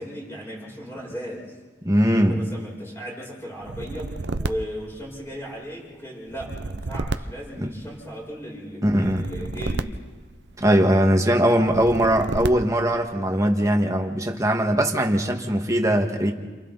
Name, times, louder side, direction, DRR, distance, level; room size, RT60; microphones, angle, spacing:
voice 1, 0.0-1.5 2.1-9.9, equal, 15° left, -4 dB, 7.7 m, -36 dB
voice 2, 1.8-2.4 7.6-7.7 8.8-9.2 10.6-16.3, equal, 20° right, 3 dB, 2.0 m, -20 dB
sound 1, 3.6-5.6 6.3-8.2 8.9-10.9 11.6-13.0, right 2 dB, 80° right, 0.8 m, -32 dB
30.0 x 27.0 x 4.2 m, 1.4 s
head